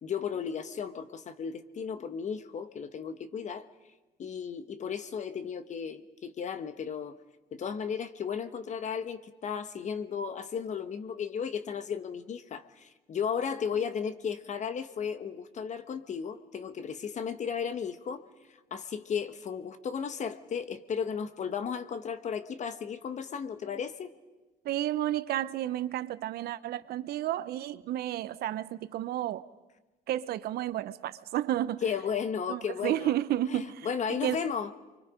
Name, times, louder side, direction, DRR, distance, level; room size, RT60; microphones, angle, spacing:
voice 1, 0.0-3.7 4.2-7.2 7.5-18.2 18.7-24.1 31.8-33.1 33.5-34.7, left 7 dB, 45° left, 1.2 m, -34 dB
voice 2, 24.6-29.5 30.1-31.8 32.5-34.4, right 13 dB, 70° right, 0.8 m, -32 dB
29.5 x 24.0 x 5.1 m
cardioid pair, 110°, 17 cm